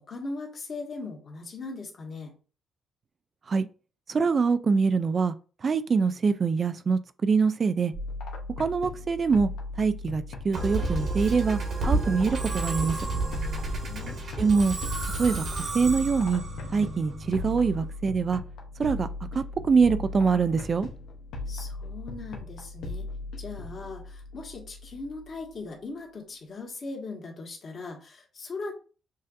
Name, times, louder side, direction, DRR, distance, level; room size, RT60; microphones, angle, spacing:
voice 1, 0.0-2.3 13.5-14.2 21.5-23.1 23.4-28.7, left 3 dB, 45° left, 1.5 m, -39 dB
voice 2, 4.1-5.3 5.6-7.9 8.6-9.5 9.8-11.6 11.9-13.0 14.4-14.7 15.2-16.4 16.7-18.4 18.8-19.1 19.3-20.9, right 5 dB, 40° right, 0.3 m, -24 dB
sound 1, 7.9-25.5, left 2 dB, 85° left, 0.8 m, -38 dB
Musical instrument, 10.5-17.9, right 3 dB, 55° right, 1.6 m, -31 dB
6.3 x 2.6 x 2.5 m
cardioid pair, 90°, 0 cm